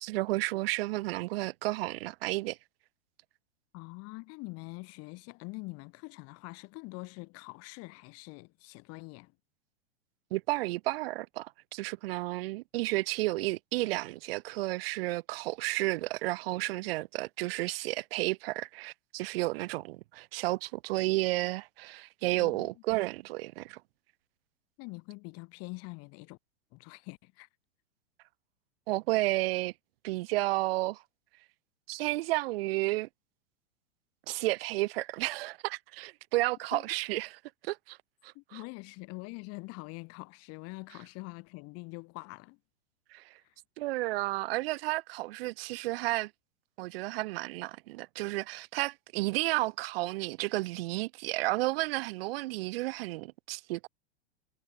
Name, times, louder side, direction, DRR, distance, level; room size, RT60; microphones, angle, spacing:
voice 1, 0.0-2.6 10.3-23.8 28.9-29.7 30.0-31.0 31.9-33.1 34.3-38.0 38.2-38.6 43.1-43.3 43.8-46.3 46.8-53.9, right 20 dB, 55° right, 1.1 m, -32 dB
voice 2, 3.7-9.3 22.3-22.7 24.8-26.4 26.7-27.5 36.7-36.8 38.3-42.6 43.4-43.5, left 27 dB, 45° left, 2.4 m, -44 dB
hypercardioid pair, 105°, 34 cm